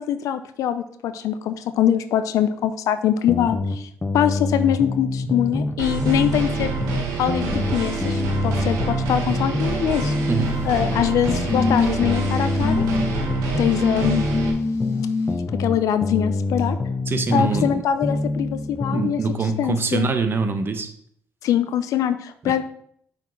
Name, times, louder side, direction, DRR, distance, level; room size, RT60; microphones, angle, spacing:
voice 1, 0.0-3.9 4.1-6.7 7.2-10.1 10.6-12.9 13.6-14.2 15.6-16.8 17.3-19.2 19.6-20.1 21.4-22.6, left 10 dB, 80° left, 11 dB, 0.5 m, -23 dB
sound 1, 3.3-5.8 6.0-9.8 10.0-13.8 14.0-17.8 18.0-19.1, left 2 dB, 25° left, 0.8 m, -26 dB
sound 2, 5.8-14.5, right 4 dB, 90° right, 1.4 m, -27 dB
sound 3, 10.2-10.8 11.5-12.2 12.6-13.0 13.7-15.3 16.6-16.7, left 3 dB, 55° left, 1.4 m, -25 dB
voice 2, 17.1-17.8 18.9-20.9, right 4 dB, 40° right, 7 dB, 1.0 m, -24 dB
5.9 x 4.3 x 4.5 m, 0.66 s
cardioid pair, 80°, 6 cm